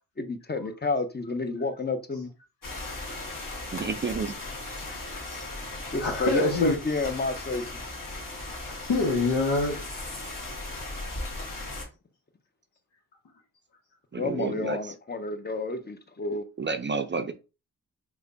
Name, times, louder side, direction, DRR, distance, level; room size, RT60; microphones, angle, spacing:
voice 1, 0.2-2.3 5.9-7.8 14.2-16.4, left 3 dB, 25° left, 0.7 m, -30 dB
sound 1, 2.6-11.8, left 2 dB, 55° left, 1.5 m, -37 dB
voice 2, 3.7-4.4 14.1-14.9 16.6-17.3, right 4 dB, 30° right, 0.4 m, -30 dB
voice 3, 6.0-6.8 8.6-10.1, left 2 dB, 90° left, 0.8 m, -26 dB
3.2 x 2.2 x 3.9 m
cardioid pair, 55°, 39 cm